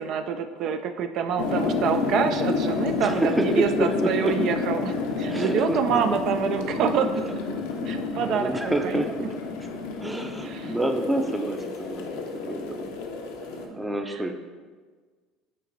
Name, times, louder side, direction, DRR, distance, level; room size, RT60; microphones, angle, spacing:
voice 1, 0.0-7.1 7.9-8.5 8.8-9.0 10.4-10.8 13.5-13.8 14.1-14.2, right 7 dB, 55° right, 7 dB, 0.4 m, -27 dB
sound 1, 1.4-13.7, left 4 dB, 85° left, 0.7 m, -30 dB
voice 2, 3.0-4.4 5.3-6.0 8.1-9.4 10.0-12.9 13.7-14.3, right 1 dB, 5° right, 5 dB, 0.5 m, -28 dB
8.5 x 3.0 x 4.0 m, 1.5 s
supercardioid pair, 110°, 0 cm